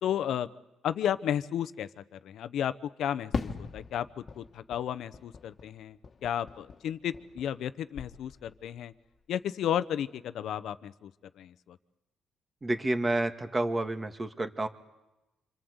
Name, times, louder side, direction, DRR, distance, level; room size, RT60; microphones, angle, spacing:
voice 1, 0.0-0.5 0.8-2.7 3.0-8.9 9.3-11.1 11.4-11.8, left 10 dB, 75° left, 13 dB, 0.9 m, -33 dB
Fireworks, 3.3-7.7 7.9-8.7, left 5 dB, 45° left, 1.6 m, -40 dB
voice 2, 12.6-14.7, right 2 dB, 25° right, 7 dB, 1.9 m, -29 dB
26.5 x 26.0 x 8.1 m, 1.0 s
cardioid pair, 90°, 0 cm